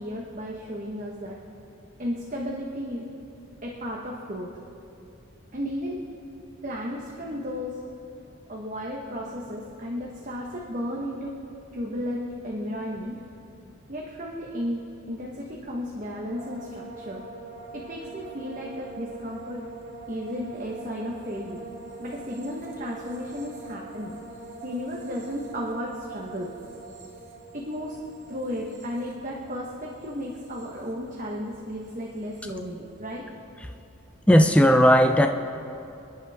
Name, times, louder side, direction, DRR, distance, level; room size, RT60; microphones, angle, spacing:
voice 1, 0.0-1.4 2.0-3.1 3.6-4.5 5.5-6.0 6.6-7.8 8.5-11.4 11.7-13.2 13.9-17.2 17.7-19.6 20.1-21.6 22.0-24.1 24.6-26.5 27.5-28.0 28.3-33.2, equal, 35° right, -2 dB, 1.3 m, -34 dB
sound 1, 16.3-31.5 31.8-32.5, right 3 dB, 60° right, 2.8 m, -44 dB
voice 2, 34.3-35.3, equal, 5° left, 5 dB, 0.5 m, -16 dB
29.5 x 10.5 x 3.6 m, 2.8 s
head